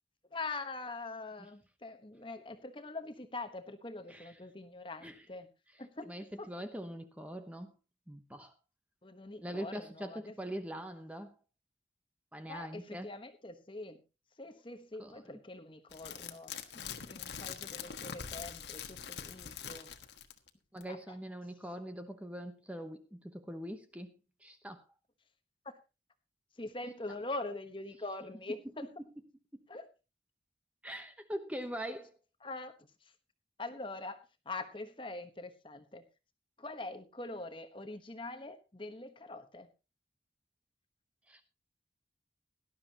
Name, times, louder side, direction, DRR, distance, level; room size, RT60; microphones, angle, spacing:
voice 1, 0.3-5.5 5.8-6.1 6.4-6.5 9.0-10.3 12.5-14.0 14.4-19.9 20.9-21.2 25.6-25.8 26.6-28.8 29.7-29.9 32.4-32.7 33.0-33.1 33.6-34.2 34.4-36.0 36.6-39.7, left 2 dB, 30° left, 1.2 m, -43 dB
voice 2, 6.0-7.7 8.1-8.5 9.4-11.3 12.3-13.1 15.0-15.2 20.7-24.9 29.5-29.7 30.8-32.1 41.3-41.4, equal, 10° right, 1.0 m, -43 dB
sound 1, 15.9-20.5 20.8-20.9, left 7 dB, 75° left, 1.4 m, -43 dB
18.0 x 12.0 x 2.9 m
head